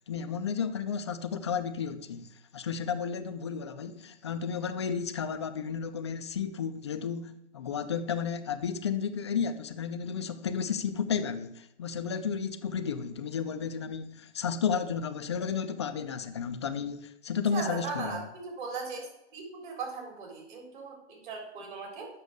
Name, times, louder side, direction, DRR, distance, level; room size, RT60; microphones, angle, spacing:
voice 1, 0.1-18.2, left 6 dB, 25° left, 0.4 m, -33 dB
voice 2, 17.5-19.1 19.3-22.1, right 4 dB, 45° right, 4.1 m, -38 dB
8.1 x 6.2 x 6.6 m
hypercardioid pair, 145°, 35 cm